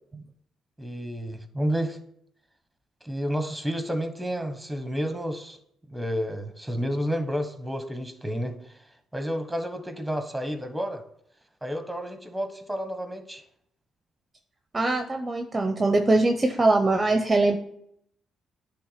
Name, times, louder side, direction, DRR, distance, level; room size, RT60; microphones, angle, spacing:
voice 1, 0.8-2.0 3.0-5.6 5.9-8.8 9.1-11.0 11.6-13.4, equal, 5° right, 8 dB, 1.1 m, -30 dB
voice 2, 14.7-17.6, right 2 dB, 25° right, 6 dB, 0.7 m, -22 dB
10.0 x 3.4 x 5.7 m, 0.70 s
cardioid pair, 90°, 0 cm